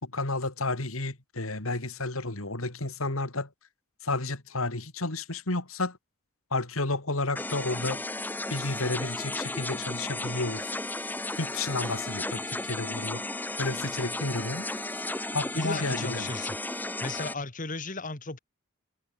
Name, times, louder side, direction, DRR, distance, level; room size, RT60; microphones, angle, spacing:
voice 1, 0.0-3.5 4.0-6.0 6.5-8.0 8.5-10.7 11.4-13.2 13.6-14.7 15.3-16.3, left 2 dB, 80° left, 3.1 m, -31 dB
sound 1, 7.3-17.3, left 2 dB, 10° left, 1.1 m, -34 dB
voice 2, 15.5-16.5 17.0-18.4, left 3 dB, 40° left, 2.0 m, -35 dB
head